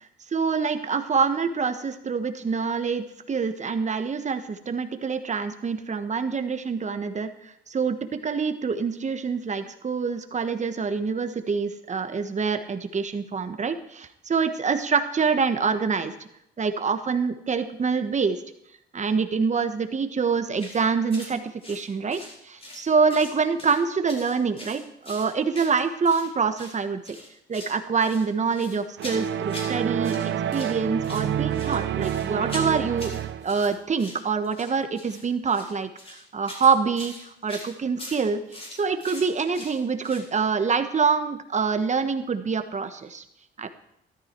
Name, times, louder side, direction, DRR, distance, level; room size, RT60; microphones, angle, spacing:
voice 1, 0.3-16.1 16.6-18.4 18.9-27.2 27.5-30.2 30.5-33.1 33.4-38.4 38.7-43.2 43.6-43.7, right 5 dB, 35° right, 8 dB, 1.4 m, -26 dB
sound 1, 20.6-20.8 21.1-21.3 21.6-22.8 23.1-23.8 24.1-26.3 26.5-26.8 27.0-27.8 28.0-29.8 30.0-30.7 31.0-40.3, left 1 dB, 30° left, 4.7 m, -42 dB
sound 2, 29.0-33.6, right 10 dB, 65° right, 0.8 m, -28 dB
13.5 x 13.0 x 4.6 m, 0.75 s
cardioid pair, 90°, 20 cm